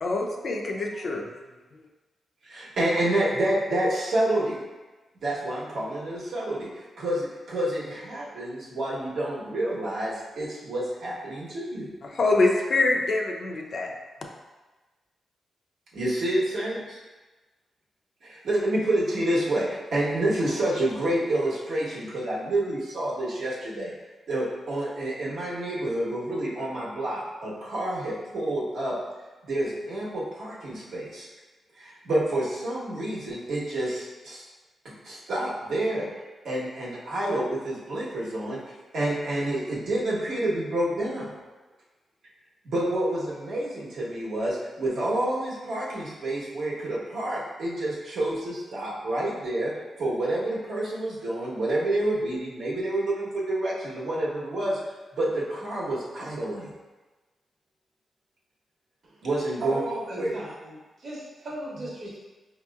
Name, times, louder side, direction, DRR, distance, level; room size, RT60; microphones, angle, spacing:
voice 1, 0.0-1.2 12.1-13.9, left 2 dB, 45° left, 0 dB, 0.4 m, -24 dB
voice 2, 2.4-4.6 5.2-6.7 7.0-11.9 15.9-17.0 18.2-23.9 24.3-28.9 29.5-31.3 31.8-34.4 35.0-36.1 36.4-41.3 42.6-49.7 50.0-54.8 55.1-56.7 59.2-59.8 60.2-60.3, right 1 dB, 75° right, -6 dB, 1.2 m, -28 dB
voice 3, 59.6-62.2, right 2 dB, 55° right, -5 dB, 1.0 m, -36 dB
5.1 x 2.8 x 2.3 m, 1.2 s
wide cardioid pair, 150°, 0 cm